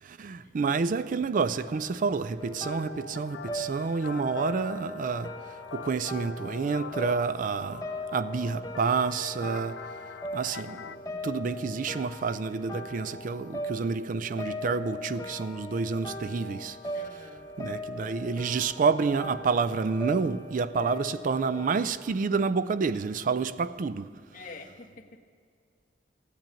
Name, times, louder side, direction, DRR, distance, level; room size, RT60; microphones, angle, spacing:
voice 1, 0.0-7.8 8.1-9.8 10.3-16.8 17.6-24.1, right 5 dB, 50° right, 0.4 m, -29 dB
sound 1, 1.5-11.0, left 7 dB, 75° left, 0.4 m, -45 dB
sound 2, 2.4-21.7, equal, 20° left, 1.0 m, -39 dB
voice 2, 16.9-17.4 24.3-25.2, left 3 dB, 50° left, 1.4 m, -47 dB
15.5 x 9.0 x 8.9 m
head